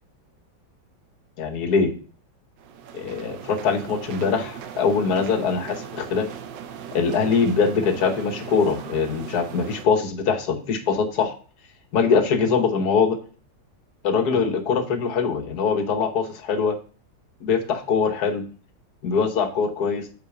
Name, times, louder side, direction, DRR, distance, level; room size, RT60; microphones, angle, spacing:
voice 1, 1.4-1.9 2.9-6.3 6.9-11.4 11.9-13.2 14.0-16.8 17.4-18.4 19.0-20.1, left 5 dB, 60° left, 7 dB, 1.6 m, -22 dB
sound 1, 2.6-9.8, right 8 dB, 80° right, 1.4 m, -38 dB
8.7 x 4.7 x 4.8 m, 0.39 s
omnidirectional pair, 1.9 m